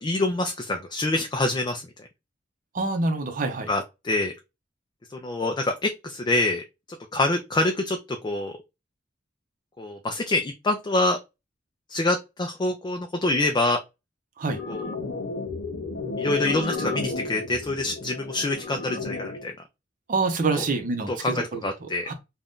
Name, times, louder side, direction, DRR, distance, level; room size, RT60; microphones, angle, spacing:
voice 1, 0.0-1.8 3.7-4.3 5.1-6.6 7.1-8.5 9.8-11.2 11.9-13.8 14.7-14.9 16.2-19.5 20.5-20.6 21.1-22.1, left 2 dB, 25° left, 0.3 m, -26 dB
voice 2, 2.7-3.7 14.4-14.6 20.1-21.6 22.1-22.2, right 3 dB, 45° right, 0.6 m, -26 dB
sound 1, 14.5-19.5, left 3 dB, 80° left, 0.6 m, -32 dB
2.6 x 2.2 x 3.5 m
head